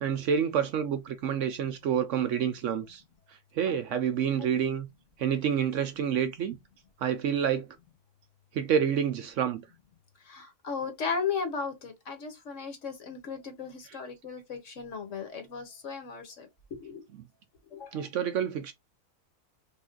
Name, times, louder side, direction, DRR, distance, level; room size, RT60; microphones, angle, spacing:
voice 1, 0.0-3.0 3.6-4.9 5.2-6.6 7.0-7.7 8.5-9.6 17.9-18.7, right 8 dB, 65° right, 0.8 m, -28 dB
voice 2, 10.2-16.5 16.8-17.1 17.7-18.1, left 5 dB, 60° left, 1.4 m, -36 dB
3.6 x 2.4 x 3.8 m
omnidirectional pair, 1.5 m